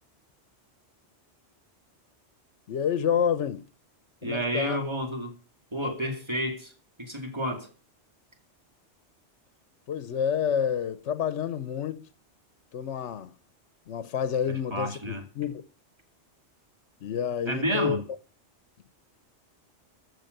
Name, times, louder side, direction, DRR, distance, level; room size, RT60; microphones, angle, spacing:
voice 1, 2.7-3.6 4.2-4.8 9.9-12.0 12.7-13.3 13.9-15.6 17.0-18.0, left 8 dB, 75° left, 1.1 m, -29 dB
voice 2, 4.2-5.3 5.7-6.7 7.0-7.7 14.7-15.2 17.5-18.0, equal, 25° right, 2.4 m, -30 dB
14.5 x 6.6 x 6.6 m
omnidirectional pair, 1.2 m